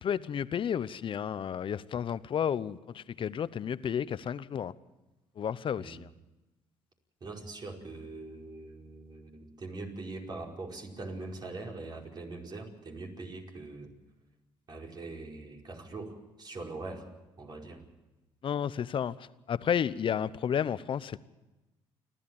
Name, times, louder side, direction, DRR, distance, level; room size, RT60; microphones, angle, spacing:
voice 1, 0.0-4.7 5.4-6.1 18.4-21.2, left 8 dB, 50° left, 16 dB, 0.9 m, -32 dB
voice 2, 7.2-13.9 14.7-17.1 17.4-17.8, right 3 dB, 40° right, 0 dB, 5.0 m, -42 dB
29.5 x 13.0 x 7.2 m, 1.1 s
supercardioid pair, 70°, 11 cm